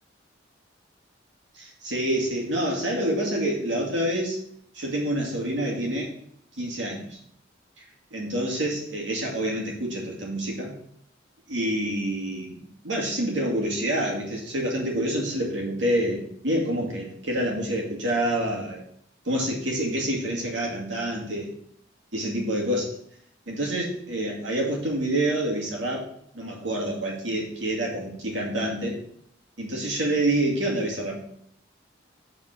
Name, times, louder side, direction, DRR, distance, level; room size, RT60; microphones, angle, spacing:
voice 1, 1.5-4.4 4.7-6.1 6.6-7.2 8.1-10.7 11.5-18.8 19.2-21.5 22.1-23.0 23.5-26.1 26.3-29.0 29.6-31.2, right 1 dB, 75° right, -2 dB, 2.3 m, -27 dB
7.4 x 4.3 x 5.7 m, 0.68 s
head